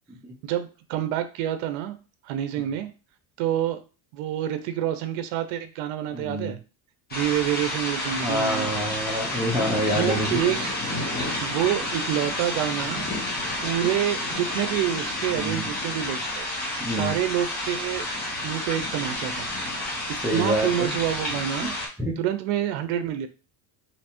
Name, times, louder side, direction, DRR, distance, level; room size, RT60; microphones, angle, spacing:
voice 1, 0.4-2.0 2.2-2.9 3.4-3.8 4.1-6.6 7.1-8.7 9.9-10.7 11.4-13.1 13.6-16.5 16.9-18.1 18.4-19.5 20.3-21.7 22.2-23.3, right 11 dB, 80° right, 10 dB, 0.6 m, -27 dB
voice 2, 6.1-6.5 8.2-10.4 15.4-15.6 16.8-17.1 20.2-20.9 22.0-22.1, equal, 5° right, -4 dB, 0.8 m, -27 dB
sound 1, 7.1-21.9, left 1 dB, 20° left, 1.1 m, -30 dB
3.2 x 2.8 x 2.9 m, 0.33 s
cardioid pair, 125°, 47 cm